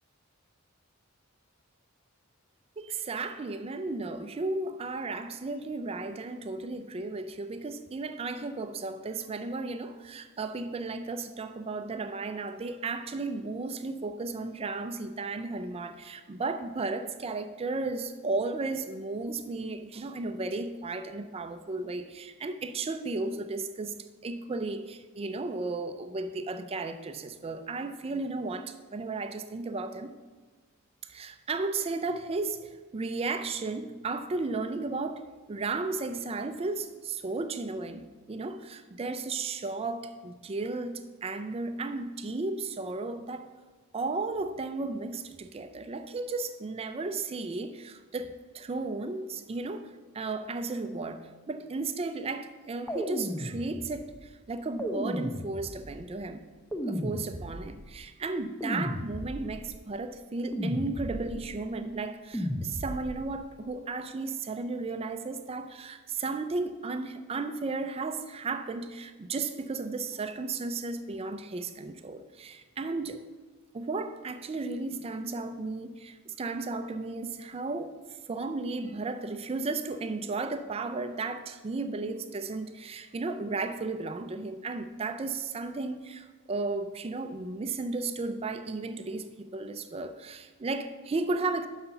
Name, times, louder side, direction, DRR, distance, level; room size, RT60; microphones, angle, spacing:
voice 1, 2.8-23.9 24.2-30.1 31.0-43.5 43.9-56.4 56.9-73.2 73.7-77.9 78.3-91.7, right 3 dB, 25° right, 9 dB, 0.4 m, -34 dB
sound 1, 52.9-54.1 54.8-56.0 56.7-57.8 58.6-59.6 60.5-61.5 62.3-63.2, equal, 5° left, 0.7 m, -34 dB
5.7 x 5.6 x 6.7 m, 1.3 s
head